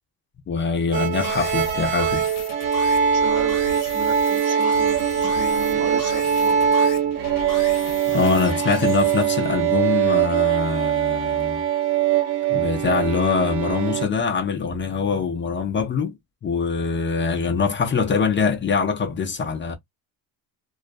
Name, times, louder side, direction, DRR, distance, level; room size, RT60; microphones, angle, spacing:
voice 1, 0.5-2.2 8.1-11.6 12.5-16.1 16.4-19.7, left 5 dB, 25° left, 0.5 m, -23 dB
sound 1, 0.9-14.1, right 8 dB, 80° right, 0.9 m, -22 dB
sound 2, 1.2-9.2, left 6 dB, 45° left, 0.8 m, -37 dB
voice 2, 3.1-6.7, right 4 dB, 35° right, 0.8 m, -35 dB
2.4 x 2.1 x 2.5 m
cardioid pair, 130°, 46 cm